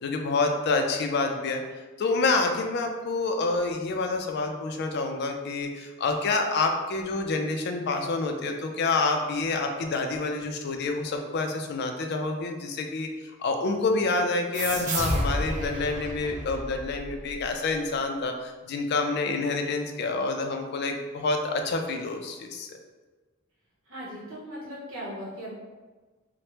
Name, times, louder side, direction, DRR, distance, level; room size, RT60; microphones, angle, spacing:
voice 1, 0.0-1.6 2.0-13.1 13.4-22.8, left 3 dB, 55° left, 4 dB, 0.3 m, -28 dB
sound 1, 14.5-17.7, right 1 dB, 40° right, 0.4 m, -31 dB
voice 2, 23.9-25.5, equal, 85° right, -7 dB, 0.9 m, -38 dB
3.2 x 2.1 x 2.9 m, 1.3 s
head